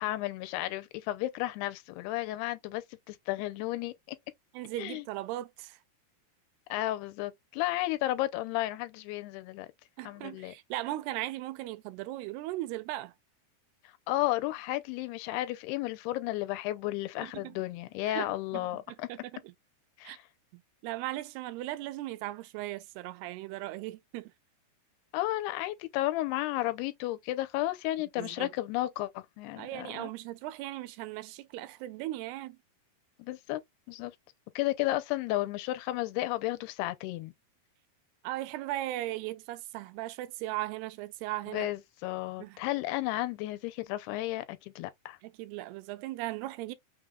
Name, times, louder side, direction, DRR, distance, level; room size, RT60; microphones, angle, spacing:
voice 1, 0.0-4.2 4.8-5.1 6.7-9.7 10.0-10.5 14.1-19.1 20.0-20.2 25.1-30.1 33.2-33.6 33.9-34.1 34.6-37.3 41.5-45.2, left 16 dB, 90° left, 2.6 m, -33 dB
voice 2, 4.5-5.8 10.0-13.1 17.2-17.6 18.1-18.8 19.1-19.5 20.0-20.2 20.5-24.3 28.2-28.5 29.6-32.6 38.2-41.7 42.4-42.6 45.2-46.8, right 16 dB, 85° right, 2.6 m, -38 dB
6.0 x 3.7 x 2.3 m
omnidirectional pair, 4.6 m